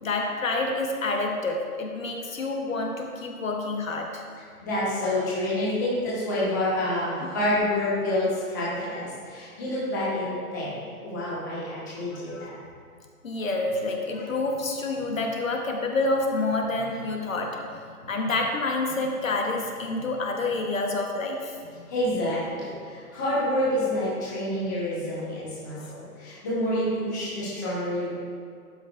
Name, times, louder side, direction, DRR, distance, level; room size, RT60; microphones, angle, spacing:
voice 1, 0.0-4.2 7.2-7.3 12.1-12.6 13.2-17.6 18.1-21.8 25.8-25.9, left 2 dB, 60° left, 1 dB, 1.2 m, -28 dB
voice 2, 4.6-10.7 11.0-12.6 21.9-28.2, left 1 dB, 15° left, -9 dB, 1.1 m, -28 dB
12.5 x 5.9 x 2.5 m, 2.2 s
hypercardioid pair, 170°, 45 cm